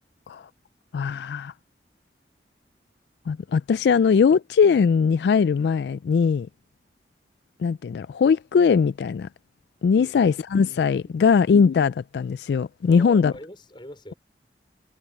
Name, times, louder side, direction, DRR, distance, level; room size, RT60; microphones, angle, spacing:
voice 1, 0.9-1.5 3.3-6.5 7.6-9.3 9.8-13.3, left 6 dB, 70° left, 0.3 m, -20 dB
voice 2, 9.9-10.3 12.8-14.2, equal, 25° left, 4.7 m, -43 dB
head